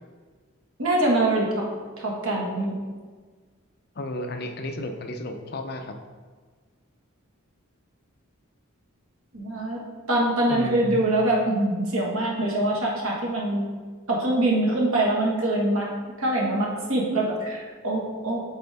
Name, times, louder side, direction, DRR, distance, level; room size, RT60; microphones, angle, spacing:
voice 1, 0.8-1.7 2.0-2.8 9.3-9.8 10.1-13.7 14.1-15.9 16.2-18.4, right 1 dB, 75° right, -2 dB, 1.5 m, -24 dB
voice 2, 4.0-6.0 10.5-11.0, left 1 dB, 45° left, 5 dB, 0.5 m, -33 dB
7.9 x 4.3 x 3.5 m, 1.5 s
head